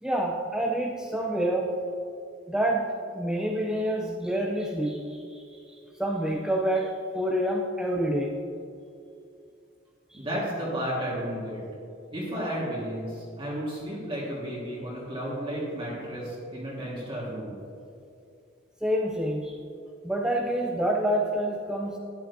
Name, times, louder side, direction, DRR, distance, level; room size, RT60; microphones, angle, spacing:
voice 1, 0.0-1.8 2.5-8.3 10.1-10.2 18.8-19.6 20.0-22.0, right 1 dB, 5° right, 0 dB, 0.4 m, -28 dB
voice 2, 10.1-11.6 12.1-17.6, equal, 30° right, -7 dB, 1.6 m, -33 dB
12.5 x 8.9 x 2.6 m, 2.5 s
head